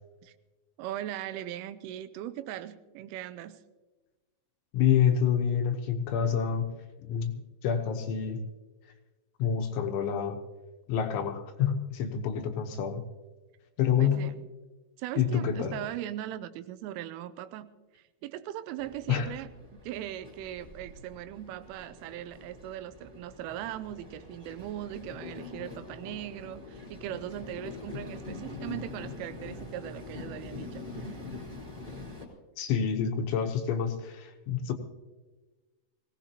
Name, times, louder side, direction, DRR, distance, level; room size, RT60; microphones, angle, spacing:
voice 1, 0.8-3.6 14.0-14.4 15.0-31.3, right 12 dB, 85° right, 12 dB, 3.2 m, -39 dB
voice 2, 4.7-6.7 7.0-7.3 7.6-8.4 9.4-10.4 10.9-13.0 13.8-14.3 15.2-15.7 19.1-19.3 32.6-34.7, left 8 dB, 75° left, 5 dB, 3.3 m, -27 dB
Train, 18.8-32.3, left 3 dB, 10° right, 3.0 m, -44 dB
22.0 x 17.0 x 2.9 m, 1.2 s
omnidirectional pair, 5.7 m